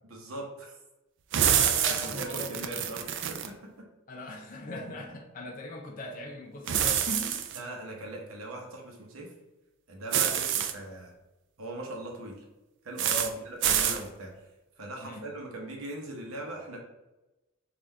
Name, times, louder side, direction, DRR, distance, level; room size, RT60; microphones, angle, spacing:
voice 1, 0.1-0.7 2.0-3.7 7.5-9.3 9.9-11.1 11.6-12.4 12.8-14.3 14.8-16.8, right 1 dB, 75° right, 0 dB, 0.8 m, -40 dB
sound 1, 1.3-3.5 6.7-7.6 10.1-10.7 13.0-13.3 13.6-14.0, right 9 dB, 60° right, 0.4 m, -27 dB
voice 2, 1.5-2.8 4.1-7.4 13.1-13.4 15.0-15.3, left 1 dB, 40° left, 1 dB, 0.5 m, -39 dB
3.8 x 2.5 x 4.2 m, 1.0 s
head